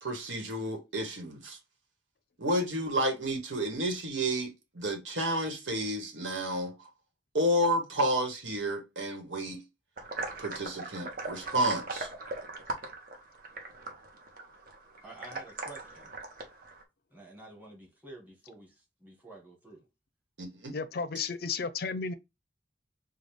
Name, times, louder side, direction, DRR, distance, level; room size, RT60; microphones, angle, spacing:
voice 1, 0.0-1.6 2.4-6.9 7.3-9.6 10.4-12.1 20.4-20.7, right 1 dB, 85° right, 1.3 m, -31 dB
sound 1, 10.0-16.8, right 3 dB, 50° right, 0.9 m, -40 dB
voice 2, 15.0-16.1 17.1-19.9, right 2 dB, 10° right, 1.6 m, -50 dB
voice 3, 20.7-22.1, left 5 dB, 55° left, 0.5 m, -33 dB
4.9 x 2.3 x 3.4 m
head